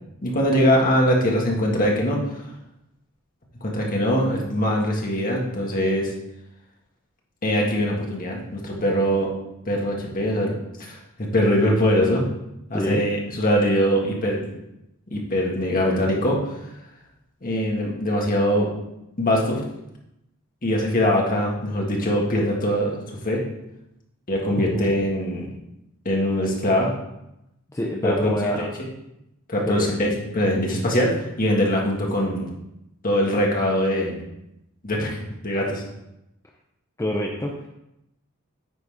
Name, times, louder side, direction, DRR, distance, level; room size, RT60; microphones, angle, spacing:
voice 1, 0.2-2.2 3.6-6.1 7.4-9.3 9.7-10.5 10.8-12.2 12.7-14.4 15.1-16.4 17.4-18.7 19.2-19.6 20.6-23.4 24.3-25.5 26.1-26.9 28.0-28.9 29.5-32.5 33.0-34.2 34.8-35.2 35.4-35.8, equal, 40° left, -1 dB, 1.7 m, -22 dB
voice 2, 24.6-24.9 27.7-28.7 29.7-29.9 37.0-37.7, left 1 dB, 15° left, -1 dB, 0.6 m, -26 dB
9.3 x 4.0 x 4.9 m, 0.86 s
head